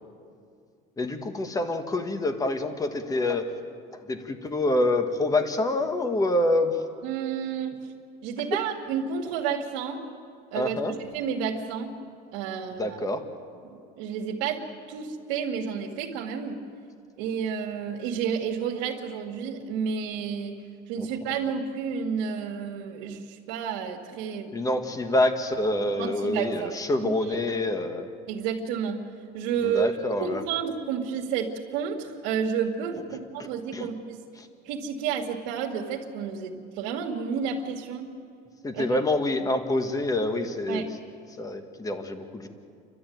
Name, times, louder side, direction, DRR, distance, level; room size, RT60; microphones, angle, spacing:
voice 1, 1.0-3.5 3.9-6.8 10.5-11.0 12.8-13.2 21.0-21.1 24.5-28.1 29.6-30.4 33.7-33.9 34.4-34.5 38.6-40.9 41.4-42.5, left 2 dB, 20° left, 7 dB, 1.7 m, -26 dB
voice 2, 7.0-7.8 8.2-10.0 10.5-12.0 12.3-13.0 13.6-16.6 17.2-20.6 20.9-24.6 25.9-27.1 28.3-29.0 29.3-29.9 30.2-34.2 34.6-38.1 38.7-39.0 40.7-40.9, right 7 dB, 85° right, -2 dB, 2.1 m, -31 dB
30.0 x 13.0 x 9.4 m, 2.4 s
cardioid pair, 130°, 19 cm